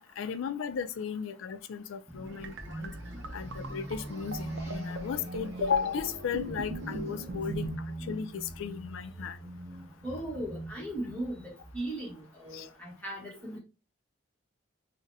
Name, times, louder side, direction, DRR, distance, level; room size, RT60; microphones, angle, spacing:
voice 1, 0.2-2.9 3.3-9.5 12.5-12.7, left 6 dB, 90° left, 0.4 m, -35 dB
sound 1, 2.1-12.8, right 1 dB, 15° right, 0.8 m, -42 dB
sound 2, 2.3-7.8, right 2 dB, 65° right, 0.5 m, -42 dB
voice 2, 10.0-13.6, right 1 dB, 10° left, 1.1 m, -38 dB
3.8 x 2.1 x 2.6 m
head